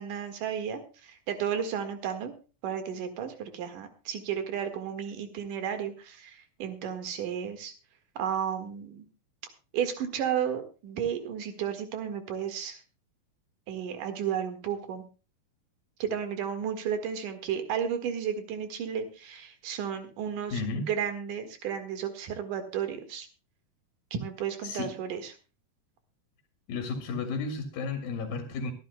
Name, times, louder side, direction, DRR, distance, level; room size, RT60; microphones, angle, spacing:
voice 1, 0.0-2.3 2.6-7.7 8.2-9.1 9.7-12.8 13.7-15.0 16.0-23.3 24.1-25.3, right 8 dB, 70° right, 7 dB, 3.2 m, -33 dB
voice 2, 20.5-20.9 24.6-24.9 26.7-28.7, left 4 dB, 90° left, 5 dB, 3.5 m, -33 dB
24.0 x 10.5 x 2.3 m, 0.33 s
omnidirectional pair, 4.0 m